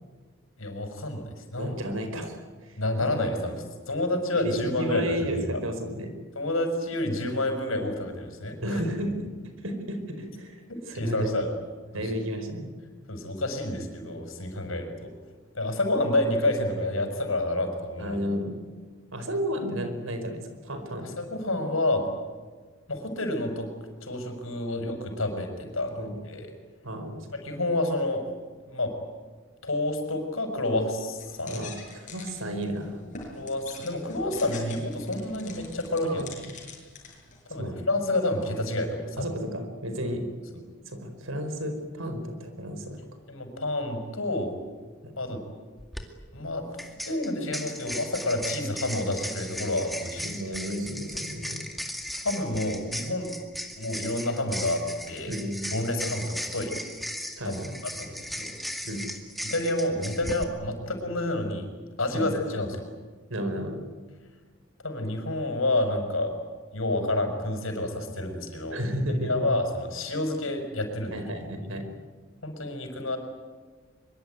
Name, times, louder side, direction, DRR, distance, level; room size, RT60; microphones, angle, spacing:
voice 1, 0.6-1.8 2.8-5.5 6.4-8.8 10.9-11.6 11.9-12.1 13.1-15.1 15.5-18.2 21.0-22.0 22.9-23.7 24.0-26.5 27.4-28.2 28.7-28.9 29.6-31.6 33.3-36.2 37.5-39.2 43.3-44.6 45.2-45.4 46.3-50.3 52.2-53.3 53.8-55.3 55.7-56.7 57.4-58.5 59.4-61.7 62.0-62.8 64.8-66.3 66.7-68.8 69.2-71.2 72.4-73.2, left 1 dB, 85° left, 6 dB, 6.0 m, -29 dB
voice 2, 1.6-2.4 2.7-2.8 4.4-6.1 8.6-9.3 9.6-11.3 11.9-12.7 18.0-18.5 19.1-21.1 26.0-26.1 26.8-27.3 31.4-33.0 36.0-36.5 37.6-37.8 39.2-40.2 40.8-43.0 50.2-51.6 55.3-55.7 57.4-57.7 58.8-59.0 62.1-62.3 63.3-63.8 68.7-69.4 71.1-71.8, equal, 85° right, 8 dB, 4.8 m, -32 dB
sound 1, 31.2-37.4, left 4 dB, 40° left, 7.5 m, -45 dB
sound 2, 45.8-46.0 46.8-60.4, equal, ahead, 2.2 m, -37 dB
24.0 x 23.5 x 9.5 m, 1.4 s
head